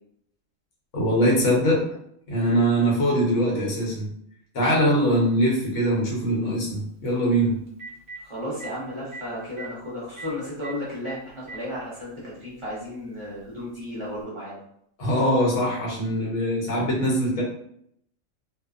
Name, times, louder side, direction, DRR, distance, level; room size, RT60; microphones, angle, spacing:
voice 1, 0.9-1.8 2.3-4.1 4.5-7.6 15.0-17.4, equal, 70° left, -3 dB, 1.2 m, -22 dB
Telephone, 5.0-5.1 7.2-7.3 7.7-8.2 8.6-8.7 9.1-9.2 9.5-9.7 10.2-10.3 10.6-10.7 11.0-11.6 12.6-12.7 14.2-14.3, right 3 dB, 55° right, 0.9 m, -38 dB
voice 2, 8.2-14.6, left 1 dB, 30° right, -8 dB, 0.6 m, -34 dB
2.6 x 2.2 x 2.3 m, 0.71 s
omnidirectional pair, 1.4 m